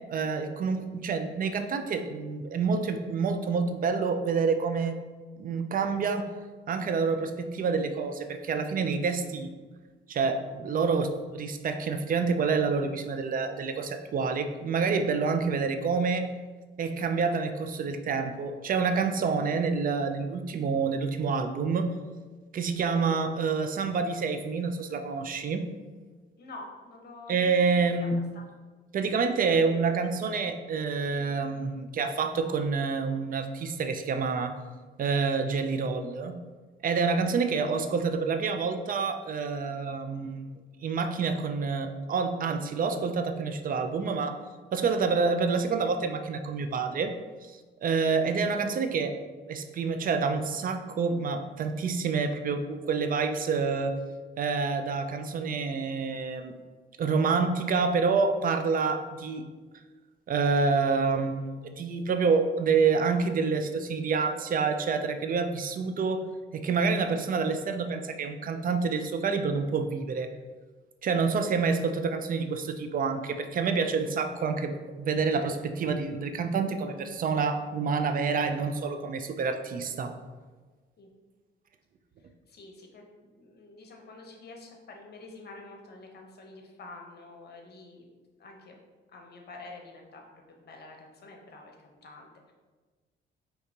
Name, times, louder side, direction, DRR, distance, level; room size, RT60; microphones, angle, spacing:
voice 1, 0.1-5.0 5.4-6.3 6.7-9.5 10.1-16.3 16.8-21.9 22.5-25.7 27.3-28.2 28.9-34.6 35.0-36.4 36.8-40.5 40.8-44.4 44.7-47.1 47.4-49.2 49.5-54.0 54.4-56.5 57.0-59.4 60.3-66.3 66.5-70.3 71.0-80.2, right 5 dB, 45° right, 8 dB, 0.4 m, -28 dB
voice 2, 26.4-27.8 28.1-28.2 81.0-81.1 82.5-88.1 88.4-88.8 89.1-90.2 90.5-92.5, left 2 dB, 55° left, 1 dB, 0.9 m, -48 dB
5.0 x 2.9 x 2.8 m, 1.3 s
cardioid pair, 90°, 20 cm